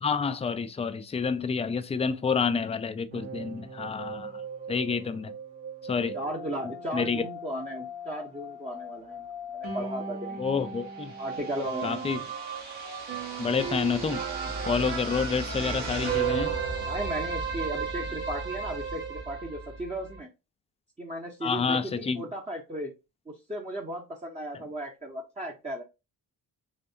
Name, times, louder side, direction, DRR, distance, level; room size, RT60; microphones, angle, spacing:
voice 1, 0.0-4.3 4.7-5.3 5.8-6.2 6.9-7.2 10.4-11.1 11.8-12.2 13.4-14.2 14.7-16.6 21.4-22.2, left 5 dB, 15° left, 0.4 m, -28 dB
sound 1, 3.1-20.2, right 5 dB, 65° right, 1.4 m, -35 dB
voice 2, 6.1-10.4 11.2-12.2 16.9-20.3 21.0-22.9 23.3-25.8, right 1 dB, 15° right, 0.7 m, -36 dB
3.4 x 3.1 x 2.6 m
hypercardioid pair, 40°, 49 cm